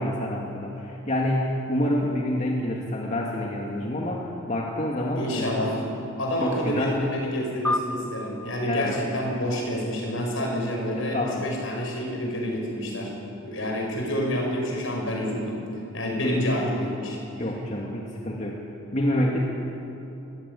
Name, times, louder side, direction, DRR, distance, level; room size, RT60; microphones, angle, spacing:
voice 1, 0.0-5.9 6.4-7.0 8.7-9.3 11.1-11.5 16.2-16.4 17.4-18.6 18.9-19.4, left 1 dB, 35° left, -2 dB, 2.3 m, -27 dB
voice 2, 5.2-5.8 6.2-13.1 13.4-15.6 15.9-17.2, equal, 70° left, 0 dB, 6.6 m, -28 dB
sound 1, 7.6-10.4, left 2 dB, 10° left, 1.0 m, -33 dB
24.5 x 16.5 x 9.9 m, 2.8 s
head